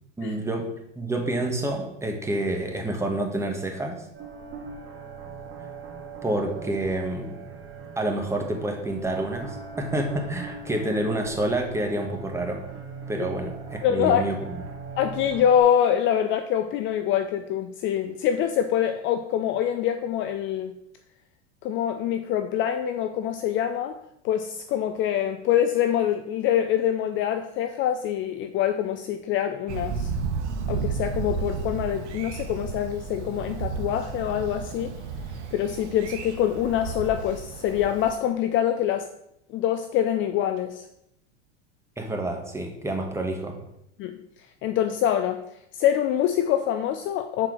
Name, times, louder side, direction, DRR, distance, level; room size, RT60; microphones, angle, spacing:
voice 1, 0.2-0.7 0.9-4.1 6.2-7.4 8.0-12.6 13.1-14.4 42.0-43.6, right 1 dB, 10° right, 2 dB, 1.3 m, -28 dB
sound 1, 4.1-15.6, right 5 dB, 35° right, 2.0 m, -40 dB
voice 2, 13.8-14.3 15.0-20.7 21.6-24.0 24.2-30.1 30.7-34.9 35.5-39.1 39.5-40.9 44.0-45.4 45.7-47.5, left 10 dB, 35° left, 8 dB, 0.5 m, -25 dB
Thunder, 29.7-38.1, right 5 dB, 75° right, 1.2 m, -33 dB
5.9 x 4.5 x 6.1 m, 0.78 s
hypercardioid pair, 115°, 35 cm